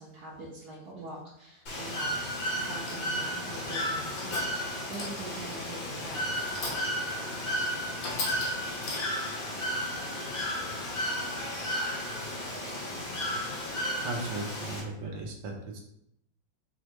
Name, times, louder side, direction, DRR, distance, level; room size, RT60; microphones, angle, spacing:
voice 1, 0.0-6.3, right 2 dB, 60° right, -6 dB, 1.3 m, -43 dB
Bird / Water, 1.7-14.8, equal, 90° left, 2.0 m, -33 dB
sound 1, 2.9-3.2 3.9-4.6 4.9-5.5 6.3-7.1 7.5-7.6 8.0-9.3, left 2 dB, 55° left, 1.2 m, -38 dB
voice 2, 14.0-15.8, right 2 dB, 85° right, 1 dB, 1.6 m, -36 dB
4.6 x 3.1 x 3.1 m, 0.75 s
omnidirectional pair, 2.1 m